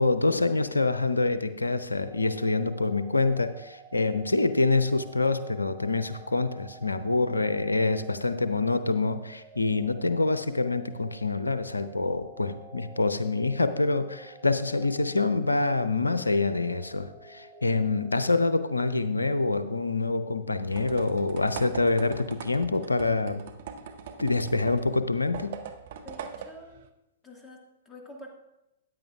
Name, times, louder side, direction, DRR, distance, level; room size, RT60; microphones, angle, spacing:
voice 1, 0.0-23.4 24.2-25.5, left 3 dB, 85° left, 11 dB, 0.6 m, -26 dB
sound 1, 2.0-19.0, right 3 dB, 10° right, 1.5 m, -50 dB
sound 2, 20.7-26.9, right 7 dB, 55° right, 0.8 m, -42 dB
voice 2, 26.0-26.8 27.2-28.3, left 1 dB, 15° left, 0 dB, 1.8 m, -47 dB
13.5 x 9.4 x 2.4 m, 0.90 s
figure-of-eight pair, 110°, 0 cm